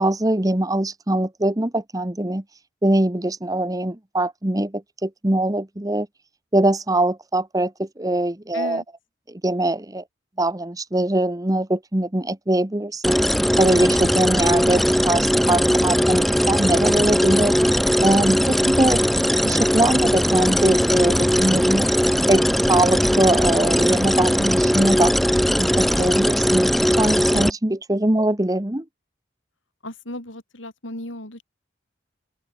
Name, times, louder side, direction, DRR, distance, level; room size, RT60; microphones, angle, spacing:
voice 1, 0.0-2.4 2.8-6.1 6.5-8.8 9.3-10.0 10.4-13.2 13.6-17.5 18.0-19.0 19.4-21.9 22.3-22.4 22.7-25.1 25.6-28.8, right 1 dB, 20° right, 1.2 m, -22 dB
voice 2, 8.5-8.8 29.8-31.4, left 1 dB, 85° left, 7.8 m, -35 dB
sound 1, 13.0-27.5, equal, ahead, 0.3 m, -19 dB
open air
head